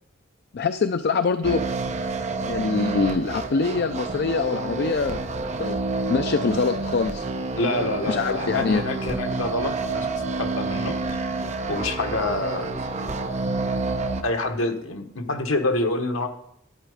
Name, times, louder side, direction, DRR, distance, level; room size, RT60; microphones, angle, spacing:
voice 1, 0.5-1.6 2.4-5.2 5.6-5.8 6.1-7.2 8.1-8.8, left 4 dB, 50° left, 10 dB, 0.4 m, -24 dB
sound 1, 1.4-14.2, right 3 dB, 35° right, 0.8 m, -28 dB
voice 2, 7.6-10.1 10.4-11.0 11.7-12.7 14.2-16.3, left 2 dB, 85° left, 5 dB, 1.3 m, -27 dB
11.5 x 9.3 x 5.0 m, 0.75 s
head